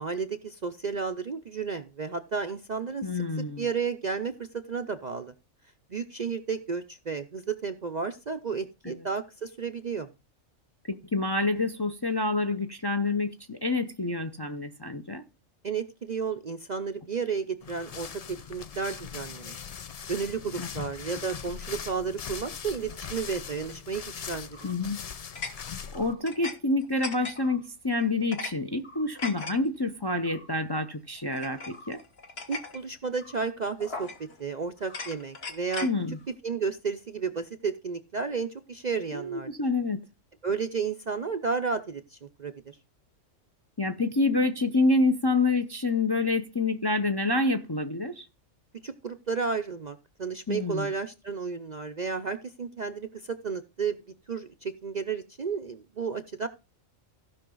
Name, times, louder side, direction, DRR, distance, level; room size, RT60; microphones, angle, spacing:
voice 1, 0.0-3.2 3.6-5.3 5.9-10.1 15.6-19.6 20.1-24.7 32.5-34.1 34.4-35.9 36.4-39.5 40.4-42.8 48.8-54.0 54.3-56.5, right 5 dB, 45° right, 0.6 m, -32 dB
voice 2, 3.0-3.7 8.8-9.0 10.9-15.2 20.6-20.7 24.6-25.0 25.9-32.0 35.8-36.2 39.1-40.0 43.8-48.3 50.5-50.9, left 2 dB, 25° left, 0.6 m, -27 dB
sound 1, 17.6-26.1, left 7 dB, 75° left, 0.3 m, -40 dB
sound 2, 24.5-24.8 25.4-26.6 26.8-27.6 28.0-28.5 28.8-29.5 30.3-30.5 31.3-32.8 33.2-33.4 33.8-34.4 34.8-35.9, left 4 dB, 50° left, 1.7 m, -39 dB
15.5 x 5.6 x 3.8 m
omnidirectional pair, 1.4 m